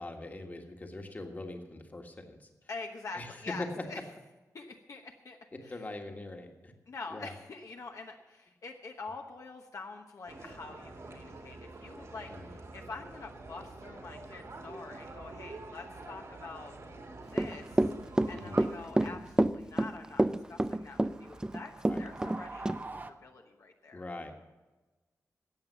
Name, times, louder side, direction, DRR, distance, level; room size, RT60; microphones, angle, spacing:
voice 1, 0.0-2.5 3.1-3.3 3.6-3.8 5.7-6.7 7.1-7.3 12.3-12.5 18.3-18.7 19.0-19.2 21.9-22.0 23.9-24.3, left 2 dB, 30° left, 3 dB, 1.6 m, -42 dB
voice 2, 2.7-4.0 4.5-5.9 6.9-17.9 18.3-21.7 22.0-24.1, left 3 dB, 60° left, 2 dB, 1.1 m, -46 dB
sound 1, 10.3-18.9, right 2 dB, 60° right, 2.4 m, -47 dB
Run / Walk footsteps, 17.3-22.4 22.7-22.8, right 1 dB, 10° right, 0.4 m, -27 dB
sound 2, 17.9-23.1, right 3 dB, 35° right, 0.8 m, -49 dB
14.5 x 8.9 x 6.9 m, 1.2 s
wide cardioid pair, 130°, 6 cm